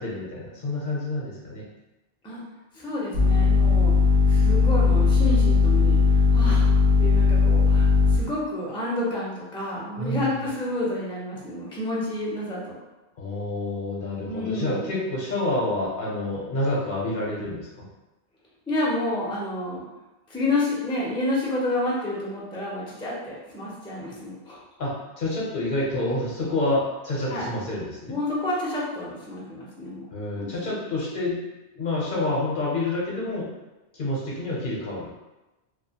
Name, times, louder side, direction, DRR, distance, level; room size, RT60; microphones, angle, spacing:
voice 1, 0.0-1.6 10.0-10.4 13.2-17.8 24.8-28.2 30.1-31.4 31.8-33.5 33.9-35.1, left 2 dB, 55° left, -5 dB, 0.8 m, -28 dB
voice 2, 2.7-3.9 4.3-6.7 7.0-12.8 14.3-14.9 18.7-19.8 20.3-24.6 27.3-27.5 28.1-30.7, left 1 dB, 5° left, -6 dB, 0.4 m, -29 dB
sound 1, 3.1-8.2, left 4 dB, 85° right, 0.9 m, -18 dB
2.5 x 2.3 x 2.8 m, 1.1 s
omnidirectional pair, 1.0 m